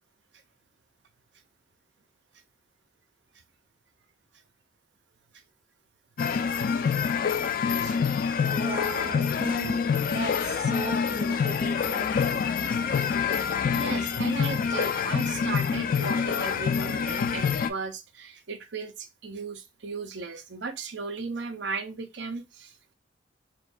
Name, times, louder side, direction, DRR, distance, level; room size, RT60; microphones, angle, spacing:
sound 1, 6.2-17.7, left 6 dB, 50° left, 0.3 m, -26 dB
voice 1, 8.5-9.8 10.1-12.1, right 3 dB, 40° right, 0.7 m, -36 dB
voice 2, 13.2-22.8, right 4 dB, 80° right, 0.6 m, -36 dB
4.3 x 2.5 x 2.3 m
head